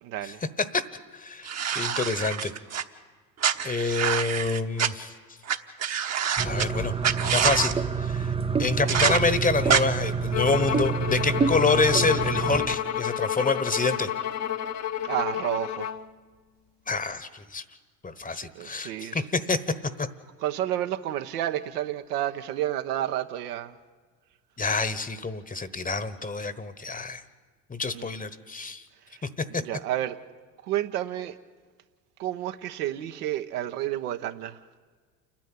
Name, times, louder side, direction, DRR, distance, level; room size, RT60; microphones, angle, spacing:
voice 1, 0.0-0.4 15.0-15.9 18.3-19.3 20.4-23.8 27.9-28.1 29.1-29.2 29.5-30.2 30.6-31.4 32.2-34.6, right 12 dB, 65° right, 1.2 m, -30 dB
voice 2, 1.1-2.5 3.6-5.1 6.4-6.9 7.2-8.3 8.6-14.1 16.9-17.6 18.0-19.6 20.0-20.1 24.6-27.2 27.7-28.8 29.5-29.6, left 4 dB, 15° left, 1.2 m, -27 dB
sound 1, 1.5-2.8 3.4-4.9 5.5-5.6 5.8-6.7 7.0-7.7 8.9-9.2 9.7-9.8, right 8 dB, 30° right, 1.2 m, -26 dB
sound 2, 6.4-12.8, right 5 dB, 10° right, 0.6 m, -28 dB
Bowed string instrument, 10.3-16.1, left 10 dB, 35° left, 1.0 m, -30 dB
29.0 x 10.5 x 9.1 m
hypercardioid pair, 70°, 50 cm